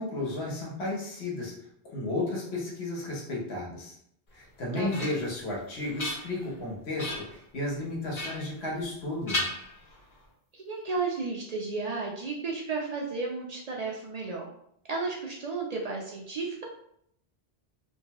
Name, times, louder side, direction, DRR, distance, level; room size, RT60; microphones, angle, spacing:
voice 1, 0.0-1.5 1.8-3.9 4.3-9.4, left 2 dB, 90° left, -3 dB, 1.2 m, -33 dB
sound 1, 4.4-5.4 5.8-6.6 7.0-7.4 8.1-9.0 9.3-10.2, left 1 dB, 50° left, 1.0 m, -36 dB
voice 2, 10.5-14.5 14.9-16.6, right 4 dB, 55° right, -2 dB, 0.5 m, -33 dB
2.7 x 2.2 x 2.8 m, 0.70 s
omnidirectional pair, 1.0 m